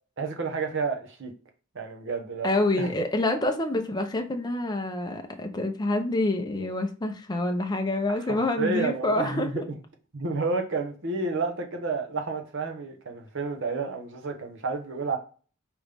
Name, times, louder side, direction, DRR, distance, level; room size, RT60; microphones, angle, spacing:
voice 1, 0.2-1.3 1.7-2.9 8.1-9.6 10.1-15.2, right 4 dB, 60° right, 0.9 m, -30 dB
voice 2, 2.4-9.6, left 2 dB, 20° left, 0.5 m, -27 dB
5.2 x 3.0 x 3.4 m
head